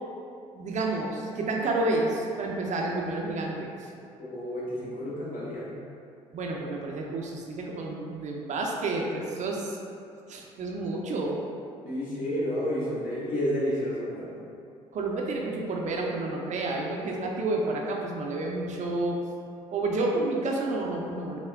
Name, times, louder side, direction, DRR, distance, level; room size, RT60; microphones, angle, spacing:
voice 1, 0.6-3.9 6.3-9.8 10.3-11.4 14.9-19.2 19.7-21.4, right 2 dB, 50° right, 0 dB, 0.5 m, -30 dB
voice 2, 4.2-5.8 11.8-14.3, equal, 60° left, -8 dB, 1.3 m, -30 dB
5.7 x 2.1 x 2.3 m, 2.5 s
hypercardioid pair, 50°, 16 cm